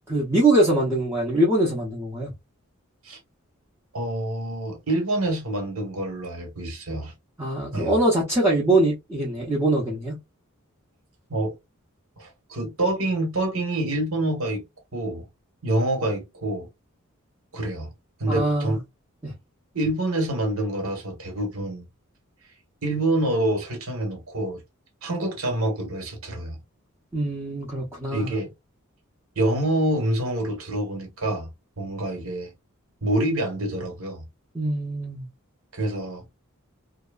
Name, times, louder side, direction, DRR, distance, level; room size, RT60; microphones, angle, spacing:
voice 1, 0.1-2.3 7.4-10.2 18.3-18.8 19.2-19.3 27.1-28.3 34.5-35.3, right 1 dB, 10° right, 0.7 m, -23 dB
voice 2, 3.9-7.1 7.7-8.0 11.3-11.5 12.2-14.6 14.9-15.3 15.6-16.7 17.5-17.9 18.2-18.8 19.7-21.8 22.8-24.6 25.0-26.6 28.1-28.5 29.4-31.5 31.8-32.5 33.0-34.3 35.7-36.2, right 1 dB, 80° right, 1.3 m, -26 dB
2.8 x 2.2 x 2.3 m
head